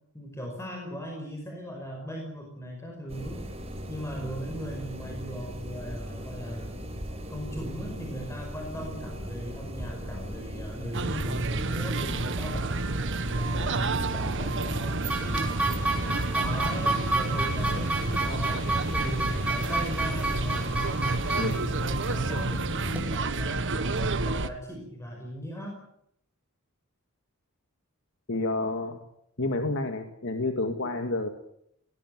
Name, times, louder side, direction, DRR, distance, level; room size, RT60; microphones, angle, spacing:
voice 1, 0.1-3.5 3.9-6.8 7.3-12.8 13.4-15.6 16.4-20.7 21.5-25.8, equal, 15° left, 1 dB, 5.4 m, -38 dB
sound 1, 3.1-22.3, equal, 30° right, 5.5 m, -38 dB
sound 2, 10.9-24.5, right 3 dB, 60° right, 1.5 m, -30 dB
sound 3, 15.1-23.0, right 2 dB, 5° right, 6.2 m, -31 dB
voice 2, 28.3-29.0 29.4-31.3, left 2 dB, 60° left, 6 dB, 2.1 m, -29 dB
22.0 x 19.0 x 9.4 m, 0.73 s
head